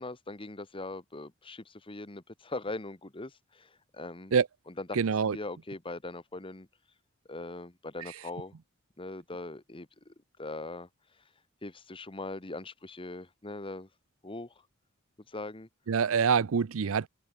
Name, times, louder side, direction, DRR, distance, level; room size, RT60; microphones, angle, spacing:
voice 1, 0.0-4.3 4.7-5.0 5.3-6.7 7.3-8.5 9.0-10.1 10.4-10.9 11.6-13.9 14.2-14.5 15.3-15.7, left 2 dB, 25° left, 1.3 m, -41 dB
voice 2, 4.9-5.4 15.9-17.1, right 6 dB, 70° right, 0.5 m, -25 dB
open air
head